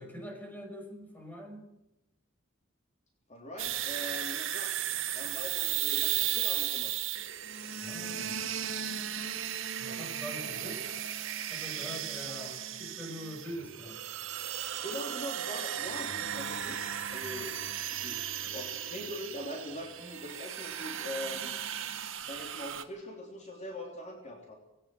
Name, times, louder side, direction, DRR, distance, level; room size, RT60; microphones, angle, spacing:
voice 1, 0.0-1.7 7.8-8.4 9.8-10.8 11.4-14.1, equal, 10° left, 3 dB, 5.8 m, -44 dB
voice 2, 3.3-4.7 5.1-6.9 12.3-12.6 14.8-16.8 17.1-17.5 17.9-21.5 22.2-24.6, left 1 dB, 35° left, 2 dB, 3.3 m, -42 dB
sound 1, 3.6-22.8, right 10 dB, 70° right, 1.9 m, -35 dB
19.5 x 18.0 x 7.6 m, 0.93 s
head